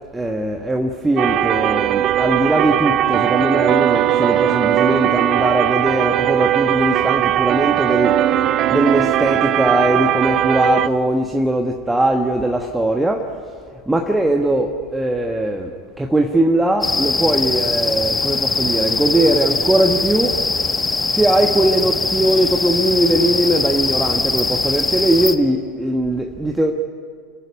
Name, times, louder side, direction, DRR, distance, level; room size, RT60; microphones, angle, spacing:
voice 1, 0.1-8.3 8.7-13.4 13.9-20.5 21.1-26.7, right 1 dB, 10° right, 2 dB, 1.3 m, -20 dB
sound 1, 1.2-10.9, right 12 dB, 45° right, 0.5 m, -18 dB
sound 2, 16.8-25.3, left 3 dB, 15° left, 1.2 m, -21 dB
29.0 x 11.0 x 9.8 m, 2.1 s
hypercardioid pair, 80°, 0 cm